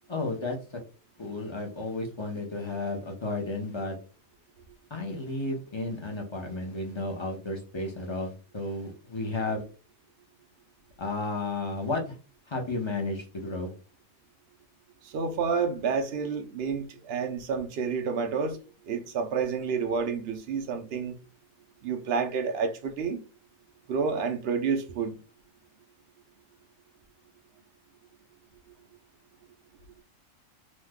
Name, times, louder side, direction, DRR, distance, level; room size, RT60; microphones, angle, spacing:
voice 1, 0.1-0.8 1.2-4.0 4.9-9.6 11.0-12.2 12.5-13.7, left 2 dB, 30° left, 0.5 m, -33 dB
voice 2, 15.0-18.6 18.9-21.1 21.8-23.2 23.9-25.1, right 5 dB, 70° right, 0.6 m, -29 dB
3.0 x 2.1 x 3.5 m
omnidirectional pair, 1.5 m